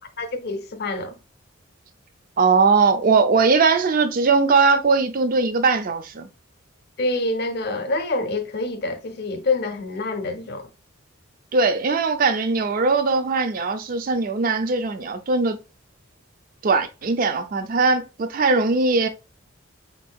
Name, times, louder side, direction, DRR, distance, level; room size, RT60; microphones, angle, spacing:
voice 1, 0.2-1.1 7.0-10.7, left 2 dB, 50° left, 0.6 m, -26 dB
voice 2, 2.4-6.3 11.5-15.6 16.6-19.1, right 4 dB, 40° right, 0.4 m, -20 dB
4.1 x 3.6 x 2.2 m
head